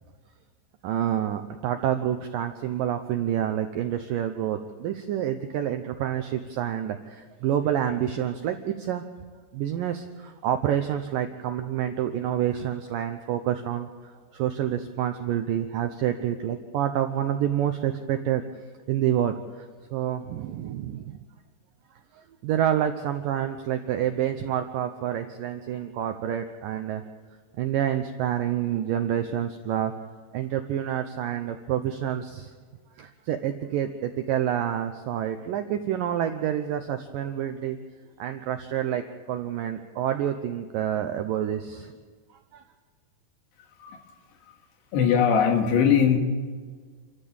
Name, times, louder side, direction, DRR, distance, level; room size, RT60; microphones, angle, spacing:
voice 1, 0.8-9.0 9.5-18.4 18.9-19.4 19.9-21.2 22.4-27.1 27.6-29.9 30.3-32.5 33.0-37.8 38.2-39.0 39.3-41.9 42.5-42.6, right 10 dB, 80° right, 7 dB, 2.0 m, -28 dB
voice 2, 44.9-46.2, left 7 dB, 75° left, 4 dB, 3.9 m, -20 dB
28.5 x 13.5 x 7.2 m, 1.5 s
omnidirectional pair, 5.1 m